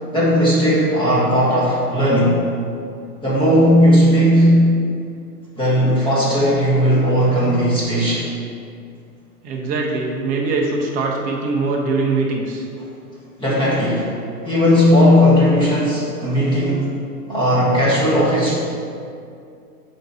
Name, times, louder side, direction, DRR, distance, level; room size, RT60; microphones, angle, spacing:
voice 1, 0.1-2.4 3.2-4.7 5.6-8.3 13.4-14.1 14.4-16.9 17.3-18.6, equal, 10° left, -8 dB, 1.3 m, -16 dB
voice 2, 9.4-12.6 17.3-17.4, right 3 dB, 15° right, -2 dB, 0.6 m, -22 dB
6.6 x 4.2 x 4.0 m, 2.4 s
hypercardioid pair, 120°, 48 cm